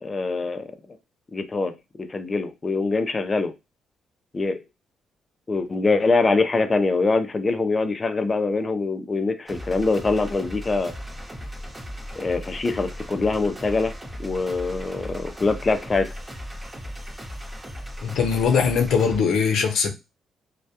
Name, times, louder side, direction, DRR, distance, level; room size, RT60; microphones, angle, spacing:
voice 1, 0.0-0.6 1.3-1.7 2.1-3.5 4.3-4.6 5.5-10.9 12.1-13.9 14.2-16.1, left 3 dB, 25° left, 0.4 m, -23 dB
sound 1, 9.5-19.2, equal, 20° right, 0.9 m, -37 dB
voice 2, 18.0-19.9, left 6 dB, 75° left, 0.5 m, -21 dB
2.2 x 2.1 x 2.7 m
cardioid pair, 125°, 0 cm